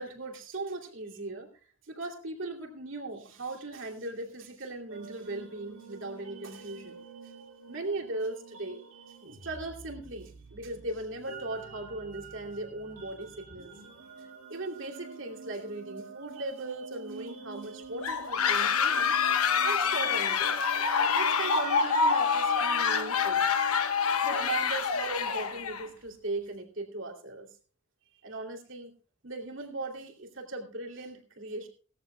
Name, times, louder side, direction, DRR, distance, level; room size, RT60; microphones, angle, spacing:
voice 1, 0.0-1.5 1.8-7.0 7.7-8.8 9.4-13.7 14.2-19.2 19.6-20.6 21.2-23.5 24.2-27.5 28.2-28.9 29.2-31.7, right 2 dB, 60° right, 2 dB, 2.8 m, -38 dB
sound 1, 4.9-24.5, right 5 dB, 85° right, 3.0 m, -47 dB
sound 2, 18.0-25.9, left 6 dB, 85° left, 1.1 m, -26 dB
19.5 x 14.0 x 2.2 m, 0.37 s
head